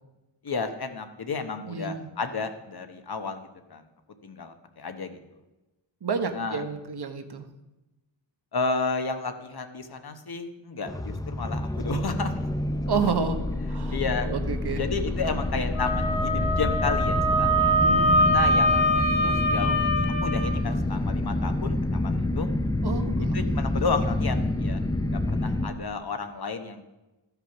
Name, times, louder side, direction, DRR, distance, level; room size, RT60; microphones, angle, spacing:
voice 1, 0.4-3.8 4.2-5.2 6.3-6.6 8.5-12.5 13.9-14.3 14.8-17.8 18.3-22.5 23.3-24.8 25.1-26.9, left 4 dB, 55° left, 7 dB, 1.1 m, -32 dB
voice 2, 1.6-2.1 6.0-7.5 12.9-13.4 13.7-14.0 14.2-14.9 17.8-18.5 22.8-23.6, right 5 dB, 60° right, 8 dB, 1.1 m, -30 dB
sound 1, 10.8-25.7, left 1 dB, 10° left, 0.4 m, -27 dB
Wind instrument woodwind instrument, 15.7-20.5, equal, 85° left, 1.6 m, -23 dB
13.0 x 5.8 x 5.9 m, 1.0 s
wide cardioid pair, 95°, 45 cm